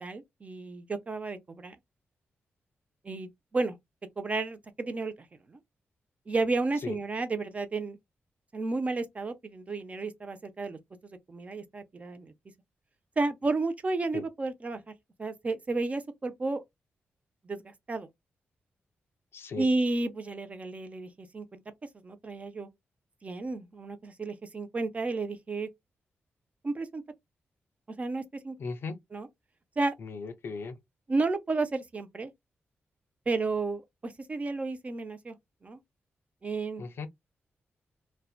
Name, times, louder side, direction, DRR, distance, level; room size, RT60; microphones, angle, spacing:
voice 1, 0.0-1.8 3.0-3.8 4.2-5.1 5.5-5.6 6.3-8.0 8.5-12.3 13.2-14.8 15.2-16.6 17.4-18.1 19.6-21.6 22.0-22.7 23.2-25.7 26.6-27.0 27.9-28.6 29.1-29.3 29.8-29.9 31.1-32.3 33.3-35.4 35.6-35.8 36.4-36.8, right 3 dB, 30° right, 0.4 m, -32 dB
voice 2, 19.3-19.7 28.6-29.0 30.0-30.8 36.8-37.1, left 4 dB, 65° left, 0.5 m, -37 dB
2.6 x 2.1 x 2.3 m
wide cardioid pair, 115°, 4 cm